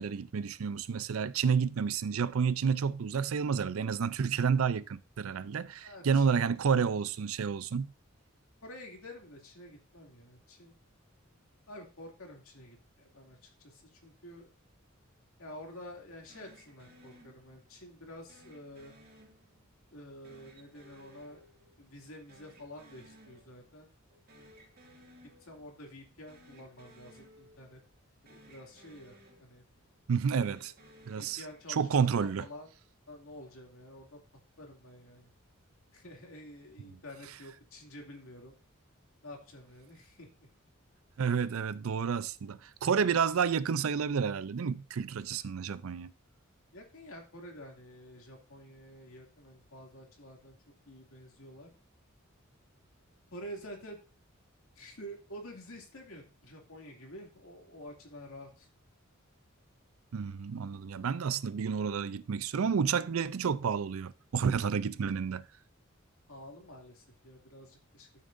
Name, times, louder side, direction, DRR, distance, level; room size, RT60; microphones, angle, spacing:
voice 1, 0.0-7.9 30.1-30.7 31.1-31.4 31.7-32.5 41.2-46.1 60.1-65.4, right 6 dB, 80° right, 0.5 m, -30 dB
voice 2, 5.8-6.5 8.6-10.7 11.7-14.5 15.4-18.9 19.9-21.4 21.8-23.9 24.3-24.5 25.4-27.8 28.2-29.7 30.3-30.6 31.2-32.7 33.1-34.2 34.6-35.3 35.9-38.6 39.2-40.3 46.7-50.6 50.9-51.7 53.3-54.0 54.8-58.7 66.3-68.2, equal, 85° left, 2.4 m, -49 dB
sound 1, 16.3-17.8 18.3-19.8 20.2-22.0 22.3-23.8 24.1-25.8 26.2-28.0 28.3-29.8 30.2-32.0, right 1 dB, 45° right, 2.3 m, -59 dB
12.5 x 6.6 x 2.6 m
head